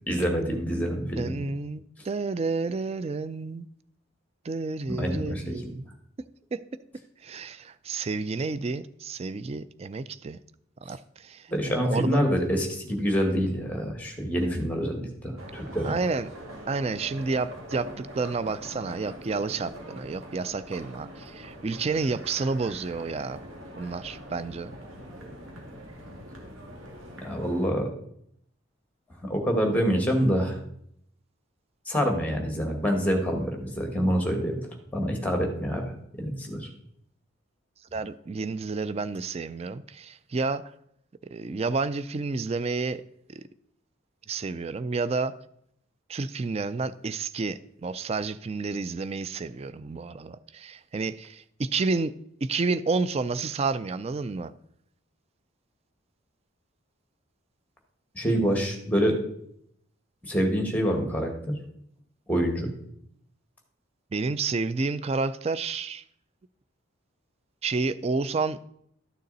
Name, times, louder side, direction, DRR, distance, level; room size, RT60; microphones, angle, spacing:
voice 1, 0.1-1.4 4.9-5.7 11.5-15.9 27.2-27.9 29.2-30.6 31.9-34.6 34.9-36.7 58.2-59.2 60.2-61.5 62.3-62.7, equal, 5° left, 1.7 m, -26 dB
voice 2, 1.2-3.7 4.4-5.9 6.5-6.6 7.2-10.4 10.8-12.2 15.8-16.3 16.7-23.4 23.8-24.7 37.9-40.6 41.3-43.0 43.3-43.4 44.3-45.3 46.1-52.1 52.4-54.5 64.1-66.0 67.6-68.6, right 4 dB, 30° right, 0.3 m, -30 dB
sound 1, 15.4-27.7, equal, 80° right, 2.2 m, -43 dB
12.5 x 6.6 x 4.1 m
head